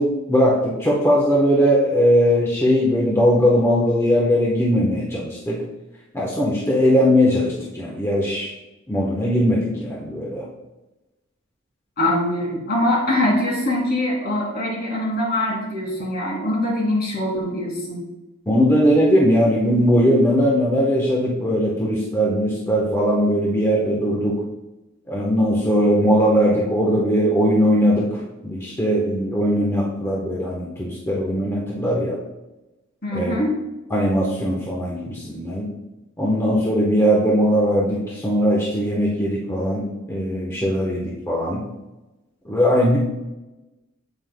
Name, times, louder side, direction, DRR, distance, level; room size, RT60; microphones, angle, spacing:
voice 1, 0.0-5.6 6.1-8.5 8.9-10.4 18.5-24.4 25.1-28.0 28.4-32.2 33.1-33.4 33.9-35.7 36.2-41.6 42.5-43.0, equal, 15° left, -4 dB, 1.1 m, -19 dB
voice 2, 12.0-18.0 33.0-33.6, left 1 dB, 50° left, -3 dB, 2.7 m, -23 dB
8.7 x 7.8 x 2.2 m, 1.0 s
head